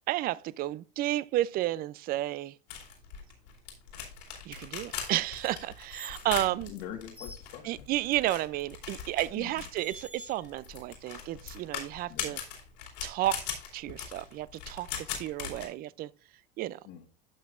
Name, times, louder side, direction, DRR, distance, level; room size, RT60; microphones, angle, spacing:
voice 1, 0.0-2.6 4.5-6.7 7.6-12.4 13.0-13.4 13.7-14.9 15.2-16.1 16.6-16.8, right 15 dB, 45° right, 0.4 m, -32 dB
sound 1, 2.7-15.7, left 8 dB, 85° left, 2.8 m, -40 dB
sound 2, 5.3-6.3 6.9-7.5 8.9-9.1 9.7-10.6 11.0-11.9, right 1 dB, 5° right, 1.3 m, -50 dB
voice 2, 6.5-7.8 9.4-9.6 12.1-12.4 16.8-17.1, left 10 dB, 70° left, 1.4 m, -44 dB
11.5 x 6.0 x 2.5 m
supercardioid pair, 105°, 21 cm